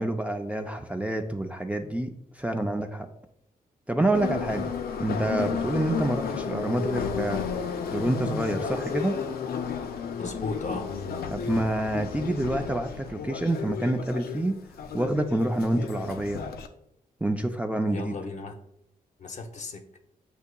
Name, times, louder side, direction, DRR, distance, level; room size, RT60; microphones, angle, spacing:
voice 1, 0.0-3.1 3.9-4.7 5.0-7.4 7.9-9.2 11.3-14.6 14.9-16.4 17.2-18.1, right 1 dB, 10° right, 0.4 m, -27 dB
Subway metro underground, 4.1-16.7, left 6 dB, 90° left, 0.4 m, -33 dB
voice 2, 10.2-10.9 17.8-18.6 19.2-19.9, left 3 dB, 50° left, 0.7 m, -35 dB
8.0 x 2.8 x 2.2 m
cardioid pair, 85°, 15 cm